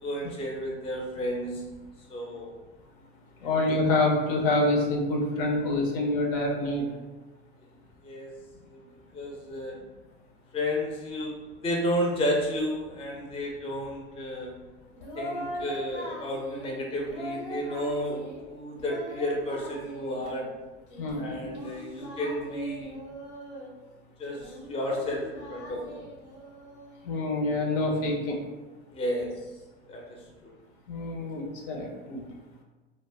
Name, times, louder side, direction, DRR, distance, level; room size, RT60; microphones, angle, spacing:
voice 1, 0.0-1.6 2.1-2.6 3.4-3.5 8.0-8.3 8.7-8.8 9.1-9.8 10.5-14.6 15.2-20.5 21.2-23.0 24.2-26.0 28.9-29.5 29.9-30.5, equal, 15° left, -1 dB, 0.5 m, -32 dB
voice 2, 3.4-6.9 21.0-21.5 27.0-28.4 30.9-32.2, left 2 dB, 60° left, 0 dB, 0.6 m, -26 dB
Singing, 14.9-16.7 17.0-18.4 18.7-20.5 20.9-23.7 24.2-27.0, equal, 85° left, 0.9 m, -41 dB
2.1 x 2.1 x 3.4 m, 1.2 s
hypercardioid pair, 75°, 33 cm